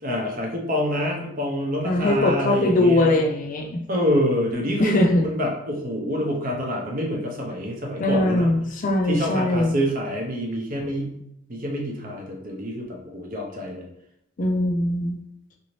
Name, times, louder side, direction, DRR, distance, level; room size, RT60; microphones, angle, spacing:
voice 1, 0.0-3.1 3.9-8.5 9.0-11.2 11.5-13.8, equal, 40° right, 0 dB, 0.6 m, -27 dB
voice 2, 1.8-3.8 4.8-5.2 8.0-9.7 14.4-15.2, left 1 dB, 35° left, 2 dB, 0.4 m, -21 dB
3.9 x 2.7 x 3.1 m, 0.78 s
head